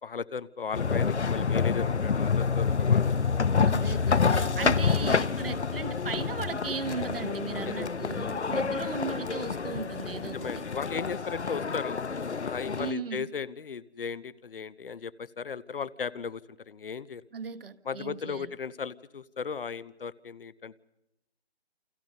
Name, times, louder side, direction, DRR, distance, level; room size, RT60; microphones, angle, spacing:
voice 1, 0.0-3.2 4.9-5.2 7.6-7.7 10.2-12.0 12.4-17.2 17.8-20.8, left 6 dB, 55° left, 0.9 m, -36 dB
sound 1, 0.7-12.9, left 5 dB, 85° left, 1.0 m, -28 dB
voice 2, 3.7-10.6 12.7-13.3 17.3-18.5, right 5 dB, 55° right, 1.3 m, -36 dB
29.0 x 28.5 x 5.5 m
figure-of-eight pair, 155°, 33 cm